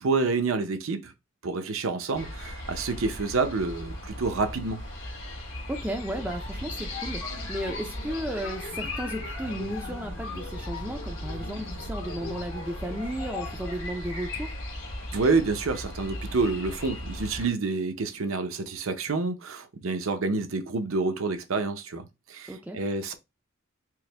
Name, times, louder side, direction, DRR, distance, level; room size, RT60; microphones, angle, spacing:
voice 1, 0.0-1.1 1.4-4.8 15.1-23.1, right 3 dB, 80° right, 0.6 m, -28 dB
sound 1, 2.1-17.5, left 1 dB, 85° left, 1.9 m, -38 dB
voice 2, 5.7-14.5 22.5-22.8, right 1 dB, 5° right, 0.4 m, -34 dB
sound 2, 6.1-13.9, left 2 dB, 60° left, 1.1 m, -40 dB
4.6 x 2.1 x 3.3 m
head